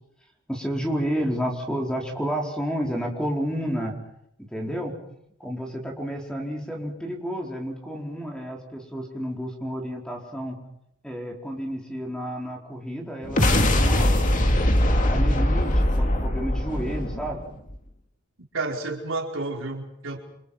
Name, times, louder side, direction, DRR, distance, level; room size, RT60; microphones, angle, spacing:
voice 1, 0.5-4.0 4.5-5.0 5.4-10.6 11.0-14.2 14.8-17.4, equal, 5° left, 0 dB, 4.7 m, -31 dB
sound 1, 13.2-17.8, left 1 dB, 40° left, 2.5 m, -21 dB
voice 2, 15.1-15.6 18.5-20.2, right 2 dB, 65° right, 1 dB, 4.7 m, -31 dB
29.5 x 26.5 x 5.8 m, 0.75 s
head